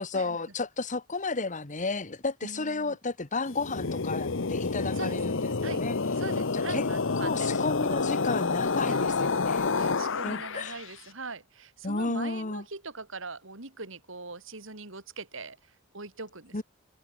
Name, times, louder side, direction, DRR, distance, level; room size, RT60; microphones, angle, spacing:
voice 1, 0.0-6.0 6.5-6.8 7.2-9.7 10.2-10.7 11.8-12.6 16.5-16.6, left 3 dB, 35° left, 1.4 m, -32 dB
voice 2, 2.4-3.0 4.9-5.8 6.2-7.5 8.9-9.3 9.8-16.6, right 3 dB, 65° right, 4.0 m, -42 dB
sound 1, 3.5-10.9, left 4 dB, 65° left, 1.0 m, -29 dB
head